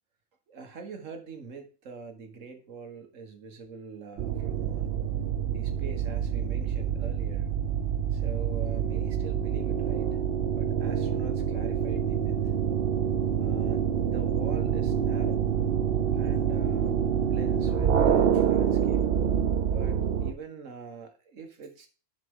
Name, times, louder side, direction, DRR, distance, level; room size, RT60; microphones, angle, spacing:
voice 1, 0.5-4.9 5.5-7.5 8.1-10.2 10.5-12.5 13.4-15.5 16.1-19.1 19.7-21.9, right 5 dB, 90° right, 5 dB, 1.7 m, -44 dB
sound 1, 4.2-20.3, right 8 dB, 60° right, 0.8 m, -27 dB
11.0 x 5.1 x 3.6 m, 0.37 s
omnidirectional pair, 1.3 m